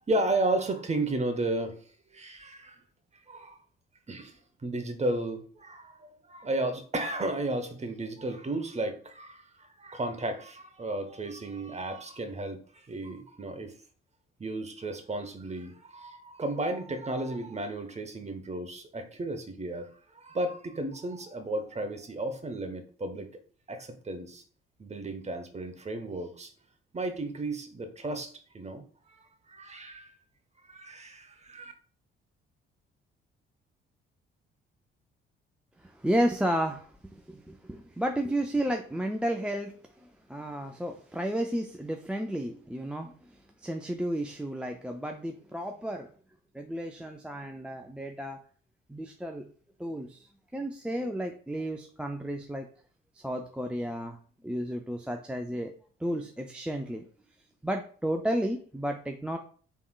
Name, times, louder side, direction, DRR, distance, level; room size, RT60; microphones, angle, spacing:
voice 1, 0.1-1.8 2.1-2.8 3.3-3.6 4.1-13.7 14.4-19.9 20.1-23.3 23.7-24.4 24.8-26.5 26.9-29.2 29.5-30.1 30.7-31.7, right 2 dB, 20° right, 8 dB, 1.0 m, -33 dB
voice 2, 35.8-46.1 46.5-48.4 48.9-49.5 49.8-52.7 53.1-54.2 54.4-55.7 56.0-57.0 57.6-59.4, right 1 dB, 5° right, 3 dB, 0.4 m, -32 dB
4.5 x 3.5 x 2.3 m, 0.43 s
figure-of-eight pair, 45°, 29 cm